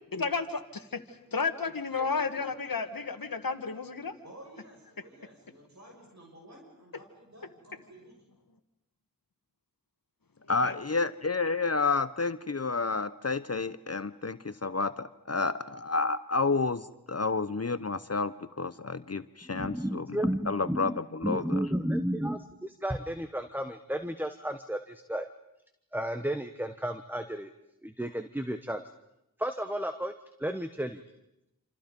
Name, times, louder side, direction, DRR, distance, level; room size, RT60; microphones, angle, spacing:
voice 1, 0.1-1.0 1.3-4.1 10.6-10.7, left 4 dB, 75° left, 1.6 m, -32 dB
voice 2, 4.2-8.2, right 1 dB, 50° right, 6.4 m, -52 dB
voice 3, 10.5-20.2 20.5-21.6, left 4 dB, 45° left, 0.8 m, -30 dB
voice 4, 19.5-25.3 25.9-27.5 27.8-28.8 29.4-30.1 30.4-31.0, right 1 dB, 5° right, 1.1 m, -33 dB
27.5 x 26.5 x 5.3 m
wide cardioid pair, 45°, 35 cm